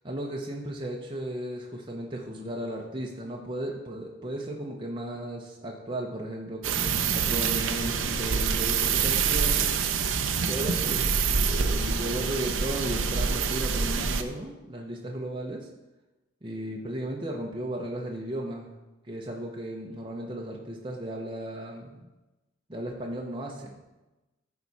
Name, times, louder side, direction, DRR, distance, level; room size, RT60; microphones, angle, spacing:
voice 1, 0.0-9.7 10.3-15.7 16.4-18.7 19.1-22.1 22.7-23.9, right 1 dB, 25° right, -1 dB, 0.8 m, -35 dB
sound 1, 6.6-14.2, right 6 dB, 80° right, 0.7 m, -26 dB
14.0 x 4.8 x 4.1 m, 1.1 s
head